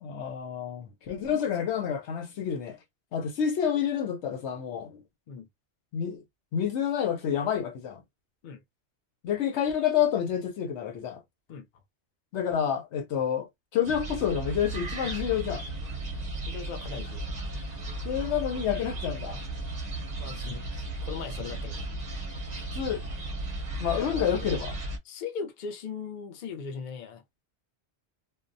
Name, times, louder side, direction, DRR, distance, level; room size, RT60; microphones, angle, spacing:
voice 1, 0.0-2.8 3.1-5.0 5.9-6.2 6.5-8.0 9.2-11.2 12.3-15.6 18.0-19.4 22.7-23.1 23.8-24.8, left 8 dB, 85° left, 1.0 m, -29 dB
voice 2, 1.3-1.7 5.3-5.5 8.4-8.6 11.5-11.7 16.5-17.3 20.2-21.8 23.9-24.6 25.0-27.2, left 6 dB, 50° left, 0.6 m, -39 dB
sound 1, 13.8-25.0, right 2 dB, 45° right, 0.7 m, -35 dB
2.3 x 2.1 x 2.5 m
omnidirectional pair, 1.1 m